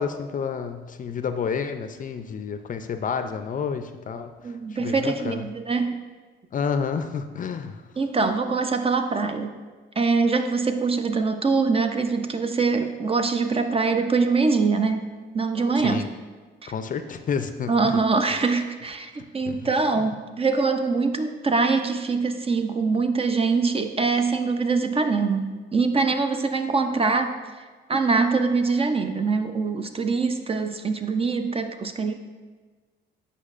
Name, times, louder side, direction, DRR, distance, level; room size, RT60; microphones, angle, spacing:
voice 1, 0.0-5.4 6.5-7.8 15.8-16.1 16.7-18.0 19.5-19.6 20.0-20.1, left 6 dB, 40° left, 9 dB, 0.4 m, -30 dB
voice 2, 4.4-6.0 8.0-9.6 10.0-15.1 15.3-16.0 16.6-16.7 17.7-27.6 27.9-32.1, right 4 dB, 30° right, 8 dB, 0.5 m, -23 dB
8.3 x 5.4 x 2.5 m, 1.4 s
cardioid pair, 90°, 20 cm